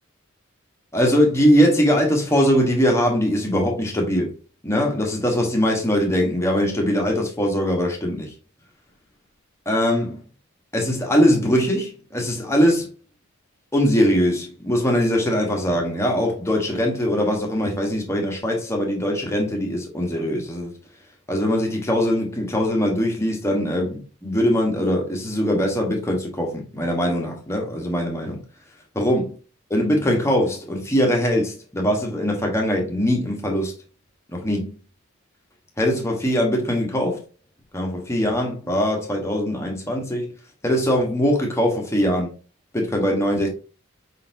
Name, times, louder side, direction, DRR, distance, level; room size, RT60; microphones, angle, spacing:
voice 1, 0.9-4.3 4.6-8.3 9.7-10.2 10.7-12.9 13.7-20.7 21.3-28.4 28.9-29.3 29.7-33.7 34.3-34.7 35.8-37.2 37.7-40.3 40.6-42.3 42.7-43.5, equal, 15° left, 1.1 m, -21 dB
4.9 x 3.9 x 2.6 m
head